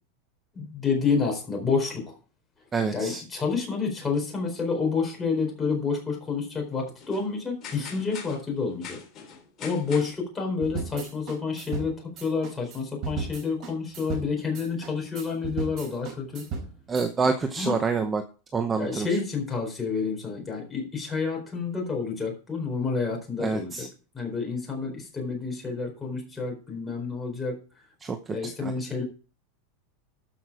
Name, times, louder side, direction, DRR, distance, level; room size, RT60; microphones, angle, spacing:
voice 1, 0.5-2.2 2.9-9.0 9.6-16.5 17.6-17.8 18.8-23.9 24.1-27.6 28.3-29.0, left 5 dB, 10° left, -1 dB, 4.3 m, -29 dB
voice 2, 2.7-3.2 16.9-18.2 18.5-19.1 23.4-23.9 28.0-28.2 28.6-28.7, right 4 dB, 15° right, 7 dB, 0.8 m, -26 dB
sound 1, 5.7-5.8 6.0-6.1 6.7-6.8 7.0-7.3 7.6-10.1, left 6 dB, 25° left, 3.8 m, -42 dB
sound 2, 10.6-17.3, right 4 dB, 35° right, 4.1 m, -36 dB
13.0 x 6.0 x 4.8 m, 0.35 s
supercardioid pair, 165°, 0 cm